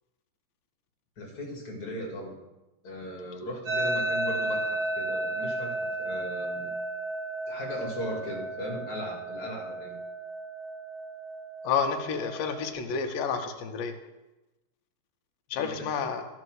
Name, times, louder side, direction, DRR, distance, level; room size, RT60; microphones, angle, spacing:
voice 1, 1.2-2.4 2.8-6.7 7.5-10.0 15.5-16.0, equal, 30° left, -1 dB, 2.3 m, -38 dB
sound 1, 3.7-12.7, right 2 dB, 50° right, 5.7 m, -33 dB
voice 2, 11.6-14.0 15.5-16.3, left 6 dB, 90° left, 5 dB, 2.5 m, -30 dB
13.5 x 5.1 x 6.3 m, 1.0 s
omnidirectional pair, 3.8 m